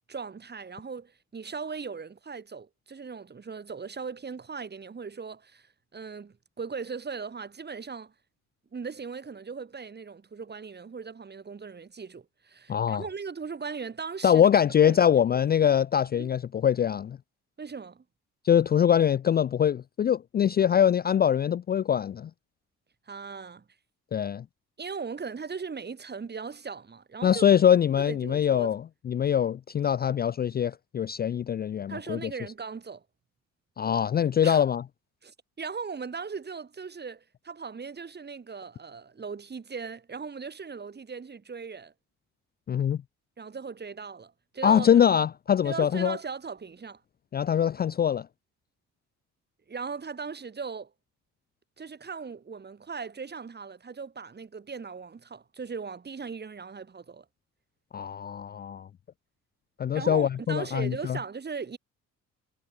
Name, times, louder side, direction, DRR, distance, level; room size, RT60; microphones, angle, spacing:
voice 1, 0.1-8.1 8.7-14.4 14.8-15.0 16.1-16.3 17.6-18.0 23.1-23.6 24.8-27.5 28.0-28.7 31.9-33.0 34.4-34.6 35.2-41.9 43.4-44.9 45.6-47.0 49.7-50.9 51.8-57.3 59.9-61.8, right 5 dB, 35° right, 3.8 m, -38 dB
voice 2, 12.7-13.0 14.2-17.2 18.4-22.3 24.1-24.4 27.2-32.3 33.8-34.8 42.7-43.0 44.6-46.2 47.3-48.3 57.9-58.9 59.8-61.2, left 9 dB, 35° left, 0.4 m, -23 dB
cardioid pair, 90°, 30 cm